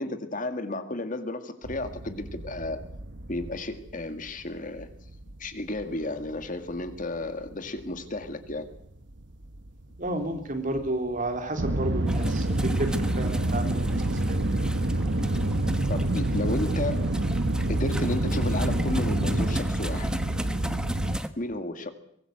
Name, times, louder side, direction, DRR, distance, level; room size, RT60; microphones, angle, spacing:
voice 1, 0.0-2.8 3.3-4.9 5.4-8.7 15.9-17.1 17.7-20.1 21.4-21.9, left 2 dB, 45° left, 9 dB, 1.9 m, -32 dB
sound 1, 1.6-4.3 4.6-7.0 7.3-10.4 10.8-21.2, right 1 dB, 65° right, 1.2 m, -28 dB
voice 2, 10.0-14.4, right 1 dB, 45° right, 5 dB, 3.5 m, -32 dB
sound 2, 12.1-21.3, equal, 5° right, 1.1 m, -36 dB
23.5 x 20.0 x 7.9 m, 0.71 s
head